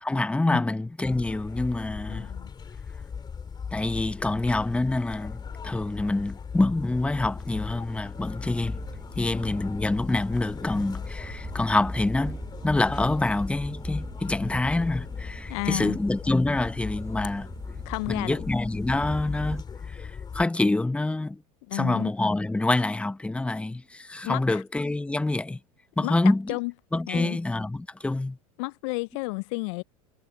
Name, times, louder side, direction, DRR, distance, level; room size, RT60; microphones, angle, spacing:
voice 1, 0.0-2.3 3.7-8.8 9.2-17.5 18.1-21.4 21.7-25.6 26.0-26.5 26.9-28.4, left 2 dB, 5° left, 0.9 m, -26 dB
sound 1, 1.0-20.4, left 6 dB, 20° left, 2.9 m, -38 dB
voice 2, 2.1-2.5 9.2-9.5 15.5-16.0 17.9-18.4 21.7-22.1 24.2-24.6 26.0-26.1 26.5-26.7 27.1-27.4 28.6-29.8, left 29 dB, 55° left, 0.5 m, -32 dB
sound 2, 7.2-19.6, right 4 dB, 15° right, 1.3 m, -43 dB
hypercardioid pair, 90°, 19 cm